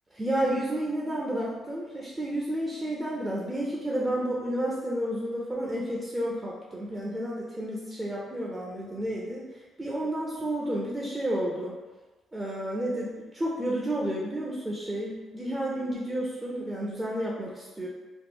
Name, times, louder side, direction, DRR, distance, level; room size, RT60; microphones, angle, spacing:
voice 1, 0.1-9.4 9.8-11.7 12.3-17.9, right 1 dB, 20° right, -5 dB, 0.6 m, -31 dB
3.0 x 2.1 x 3.6 m, 1.2 s
cardioid pair, 90°, 0 cm